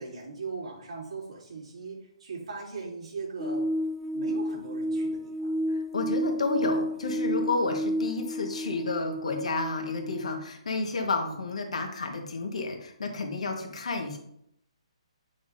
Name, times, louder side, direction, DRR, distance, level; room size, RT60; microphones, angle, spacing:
voice 1, 0.0-3.7 4.1-5.5 11.2-11.4, right 4 dB, 75° right, -3 dB, 3.0 m, -39 dB
sound 1, 3.4-10.5, equal, 5° right, 0.4 m, -31 dB
voice 2, 5.7-14.2, left 3 dB, 80° left, 3 dB, 1.4 m, -31 dB
8.1 x 5.9 x 2.6 m, 0.72 s
hypercardioid pair, 145°, 3 cm